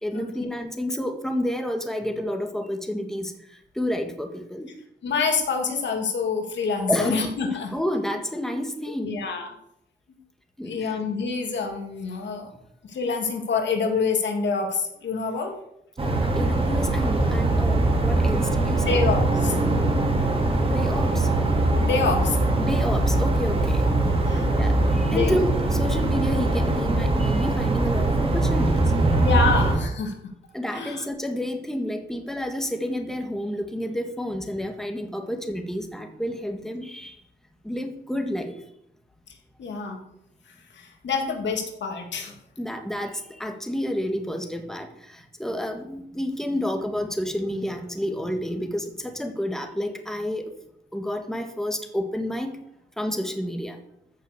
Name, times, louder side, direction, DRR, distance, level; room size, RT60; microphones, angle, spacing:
voice 1, 0.0-4.7 6.9-7.2 7.7-9.2 10.6-11.0 16.0-19.0 20.7-21.3 22.6-23.9 24.6-28.9 30.5-37.1 37.6-38.6 42.6-50.5 50.9-52.6 53.0-53.8, equal, ahead, 5 dB, 1.8 m, -30 dB
voice 2, 5.0-7.7 9.0-9.5 10.6-12.5 12.8-15.5 18.8-19.6 21.8-22.4 23.9-24.5 25.1-25.3 29.2-30.1 30.7-31.0 39.6-40.0 40.7-42.3, left 4 dB, 70° left, 3 dB, 2.9 m, -26 dB
sound 1, 16.0-29.8, right 2 dB, 30° right, 3.0 m, -22 dB
14.5 x 6.6 x 7.0 m, 0.76 s
wide cardioid pair, 125°, 19 cm